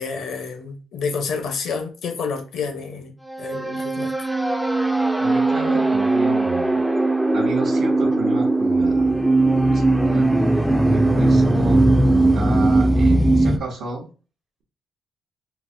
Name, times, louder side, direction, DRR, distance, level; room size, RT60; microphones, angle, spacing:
voice 1, 0.0-4.1, left 5 dB, 75° left, 0.7 m, -29 dB
sound 1, 3.3-13.6, right 2 dB, 5° right, 0.3 m, -19 dB
voice 2, 5.2-6.8 7.3-10.3 10.9-11.9 12.3-14.1, right 3 dB, 80° right, 0.9 m, -32 dB
3.9 x 2.1 x 2.6 m
cardioid pair, 90°, 0 cm